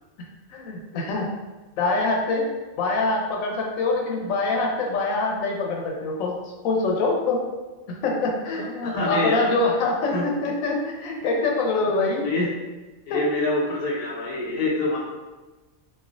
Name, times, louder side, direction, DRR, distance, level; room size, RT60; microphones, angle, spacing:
voice 1, 0.5-1.3 1.8-6.4 6.6-7.4 7.9-12.3 13.1-13.2, left 3 dB, 85° left, 0 dB, 1.0 m, -24 dB
voice 2, 8.6-9.6 10.1-10.3 12.0-12.5 13.1-15.0, left 2 dB, 55° left, -3 dB, 0.8 m, -26 dB
3.1 x 2.3 x 2.4 m, 1.2 s
omnidirectional pair, 1.4 m